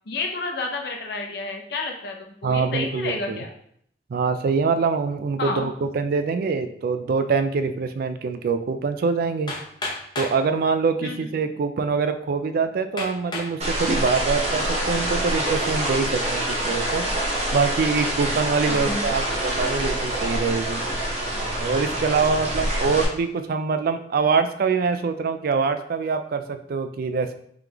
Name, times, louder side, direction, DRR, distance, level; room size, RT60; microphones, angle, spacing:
voice 1, 0.1-2.2 2.4-3.5 5.4-5.7 11.0-11.3 18.7-19.0 22.6-22.7, left 3 dB, 65° left, 2 dB, 0.7 m, -30 dB
voice 2, 2.4-3.4 4.1-9.5 10.2-17.1 17.5-20.8 21.6-27.3, right 5 dB, 55° right, 9 dB, 0.3 m, -24 dB
Hammer, 9.5-10.4 11.3-11.4 12.0-12.1 13.0-13.6 14.2-14.6, left 2 dB, 25° left, 0.7 m, -32 dB
sound 1, 13.6-23.0, right 1 dB, 35° right, 1.0 m, -26 dB
3.8 x 3.3 x 2.9 m, 0.68 s
head